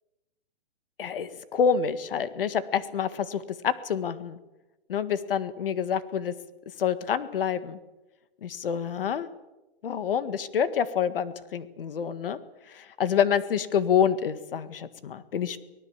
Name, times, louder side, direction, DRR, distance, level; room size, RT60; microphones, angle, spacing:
voice 1, 1.0-4.4 4.9-6.3 6.8-7.8 8.4-9.3 9.8-12.4 12.7-15.6, left 7 dB, 65° left, 13 dB, 1.8 m, -27 dB
24.5 x 19.0 x 7.4 m, 1.0 s
hypercardioid pair, 165°, 31 cm